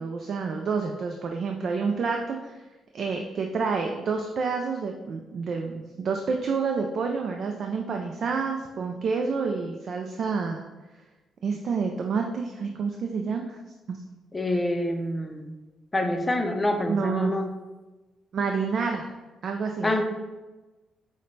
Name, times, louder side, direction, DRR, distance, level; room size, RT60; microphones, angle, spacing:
voice 1, 0.0-2.6 2.9-10.6 11.4-13.6 13.9-14.0 14.5-14.6 16.9-17.4 18.3-19.1 19.4-19.9, right 5 dB, 55° right, 3 dB, 0.4 m, -28 dB
voice 2, 14.3-15.5 15.9-17.5 19.8-20.0, left 1 dB, 20° left, 4 dB, 0.5 m, -26 dB
6.2 x 2.1 x 3.2 m, 1.1 s
cardioid pair, 90°, 0 cm